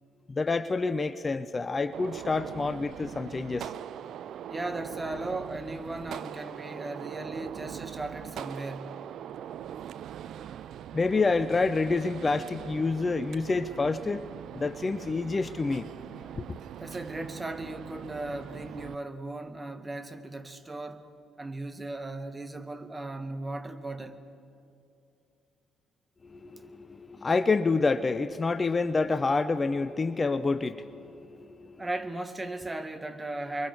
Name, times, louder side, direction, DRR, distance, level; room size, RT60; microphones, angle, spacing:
voice 1, 0.3-3.8 10.9-14.3 14.5-15.9 16.4-16.5 26.2-31.9, left 3 dB, 30° left, 0.7 m, -28 dB
Gunshot gunfire, 1.9-18.9, right 10 dB, 60° right, 0.5 m, -42 dB
voice 2, 4.5-9.0 16.8-21.1 21.4-24.2 31.8-33.7, right 2 dB, 20° right, 1.7 m, -37 dB
29.5 x 22.5 x 4.9 m
hypercardioid pair, 50°, 0 cm